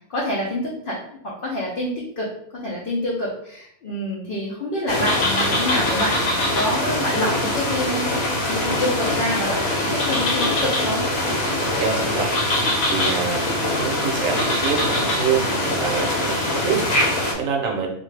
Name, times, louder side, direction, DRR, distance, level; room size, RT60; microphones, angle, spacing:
voice 1, 0.1-2.3 2.5-11.0, left 1 dB, 60° left, -4 dB, 0.6 m, -27 dB
sound 1, 4.9-17.3, left 1 dB, 80° left, 1.1 m, -23 dB
voice 2, 11.6-12.4 12.8-17.9, right 6 dB, 70° right, 0 dB, 1.0 m, -26 dB
2.5 x 2.3 x 3.2 m, 0.71 s
omnidirectional pair, 1.5 m